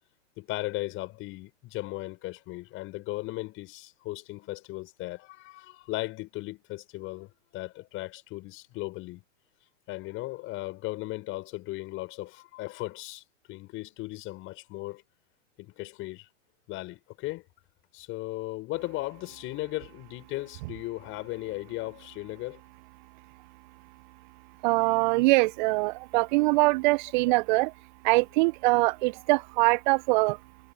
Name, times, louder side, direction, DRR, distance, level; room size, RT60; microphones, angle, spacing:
voice 1, 0.4-9.2 9.9-15.0 15.6-16.3 16.7-17.4 17.9-22.6 27.3-27.4, left 19 dB, 30° left, 5.9 m, -37 dB
voice 2, 24.6-27.7 28.0-30.4, right 24 dB, 35° right, 1.2 m, -23 dB
figure-of-eight pair, 110°, 39 cm